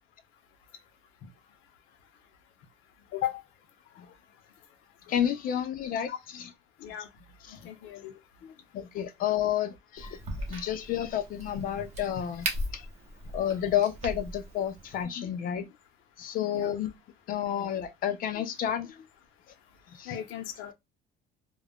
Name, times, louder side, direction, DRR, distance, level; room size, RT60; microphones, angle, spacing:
voice 1, 5.1-6.1 6.4-6.5 7.5-7.6 8.4-10.1 10.5-12.5 12.7-12.8 13.3-15.7 16.2-16.9 17.3-19.0 20.0-20.2, left 10 dB, 45° left, 0.4 m, -30 dB
voice 2, 6.1-6.4 6.8-7.1 7.5-8.1 16.5-16.7 20.1-20.7, left 11 dB, 75° left, 0.8 m, -36 dB
Crack, 10.0-15.0, right 1 dB, 30° right, 0.7 m, -38 dB
2.3 x 2.1 x 3.4 m
cardioid pair, 150°, 21 cm